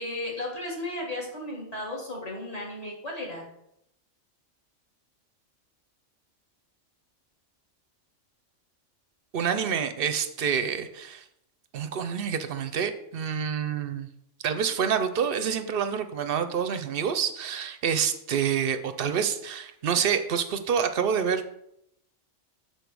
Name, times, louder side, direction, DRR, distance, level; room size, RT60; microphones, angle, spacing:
voice 1, 0.0-3.5, left 1 dB, 30° left, -2 dB, 2.0 m, -34 dB
voice 2, 9.3-11.2 11.7-14.1 14.4-21.6, right 7 dB, 55° right, 9 dB, 0.7 m, -27 dB
6.8 x 4.4 x 6.1 m, 0.79 s
omnidirectional pair, 1.3 m